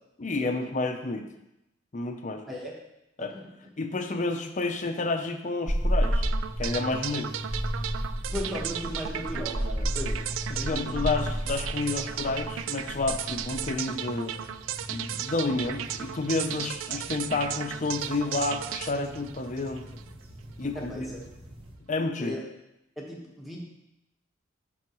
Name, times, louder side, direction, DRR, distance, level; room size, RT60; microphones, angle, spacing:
voice 1, 0.2-1.3 1.9-2.5 3.2-3.4 3.8-6.3 6.6-7.3 9.8-9.9 10.5-14.4 14.9-19.9 20.6-21.1 21.9-22.3, left 3 dB, 40° left, 6 dB, 0.6 m, -30 dB
sound 1, 5.7-21.8, equal, 30° right, 1.0 m, -34 dB
sound 2, 6.0-20.1, right 10 dB, 85° right, 0.3 m, -35 dB
voice 2, 8.3-10.9 20.7-21.2 22.2-22.4 23.0-23.6, equal, ahead, -3 dB, 1.3 m, -37 dB
10.5 x 3.9 x 3.1 m, 0.88 s
head